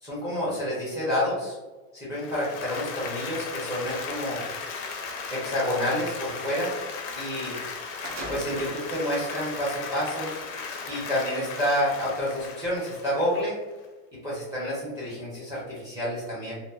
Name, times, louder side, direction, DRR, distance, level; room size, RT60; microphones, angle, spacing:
voice 1, 0.0-1.6 1.9-4.4 5.3-6.7 7.1-7.5 8.3-10.3 10.9-13.6 14.2-16.6, equal, 10° right, -8 dB, 0.6 m, -29 dB
Applause, 2.1-13.8, left 5 dB, 50° left, 0.5 m, -37 dB
sound 1, 4.2-4.4 7.3-7.4 7.7-8.8 9.5-9.6 10.5-10.7, right 1 dB, 90° right, 0.8 m, -41 dB
2.8 x 2.0 x 2.3 m, 1.2 s
cardioid pair, 175°, 36 cm